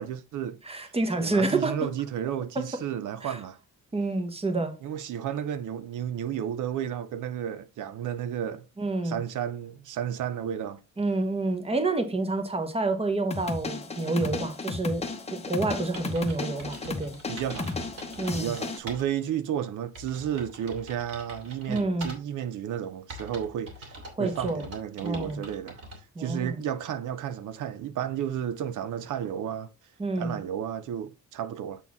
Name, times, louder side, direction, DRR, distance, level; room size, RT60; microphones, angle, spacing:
voice 1, 0.0-0.6 1.2-3.6 4.8-8.6 9.0-10.8 17.3-17.7 18.3-25.8 26.2-29.7 30.2-31.8, right 9 dB, 85° right, 0.6 m, -32 dB
voice 2, 0.6-1.9 2.5-2.6 3.2-3.4 3.9-4.8 8.8-9.2 11.0-17.2 18.2-18.5 21.7-22.1 24.2-24.6 25.0-25.4 26.1-26.6 30.0-30.4, right 2 dB, 20° right, 1.0 m, -28 dB
sound 1, 13.3-18.8, left 3 dB, 20° left, 0.7 m, -34 dB
sound 2, 15.9-19.1 19.4-19.5 19.9-22.4 23.1-26.0, right 1 dB, 55° right, 2.4 m, -44 dB
7.4 x 4.2 x 3.5 m
wide cardioid pair, 140°, 30 cm